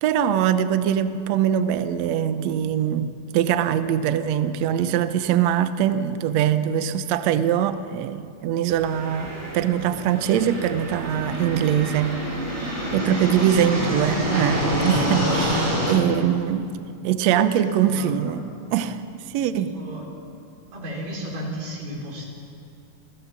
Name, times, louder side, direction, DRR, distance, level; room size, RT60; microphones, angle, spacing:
voice 1, 0.0-12.2 12.9-16.7 17.0-18.5 18.7-19.0 19.3-19.8, right 10 dB, 90° right, 11 dB, 1.5 m, -22 dB
sound 1, 8.7-15.9, equal, 10° right, 4.7 m, -27 dB
voice 2, 17.3-18.3 19.5-20.0 20.7-22.2, right 1 dB, 65° right, -2 dB, 5.9 m, -34 dB
28.0 x 15.5 x 7.4 m, 2.4 s
omnidirectional pair, 4.3 m